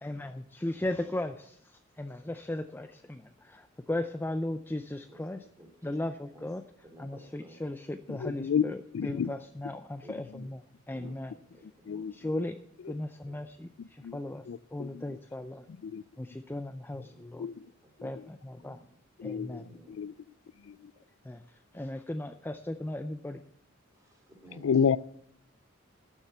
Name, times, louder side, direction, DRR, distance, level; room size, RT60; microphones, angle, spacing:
voice 1, 0.0-5.5 5.8-6.6 7.0-11.3 12.1-12.6 12.9-14.4 14.7-15.6 16.2-17.5 18.0-18.8 19.2-19.6 21.2-23.4, left 1 dB, 10° left, 9 dB, 0.4 m, -37 dB
voice 2, 6.8-7.5 8.4-8.5 9.2-9.5 10.0-10.1 10.4-10.5 10.9-11.2 11.5-12.0 13.2-13.4 17.0-17.2 18.5-19.0 19.5-20.1 23.9-24.7, right 1 dB, 15° right, 3 dB, 3.0 m, -54 dB
voice 3, 8.1-8.7 8.9-9.3 10.3-10.4 11.9-12.4 13.8-14.2 14.5-15.0 15.8-16.0 17.4-17.6 18.0-18.1 19.2-20.1 20.7-20.8 24.6-25.0, left 7 dB, 80° left, 20 dB, 0.4 m, -30 dB
12.5 x 7.3 x 8.0 m, 0.71 s
head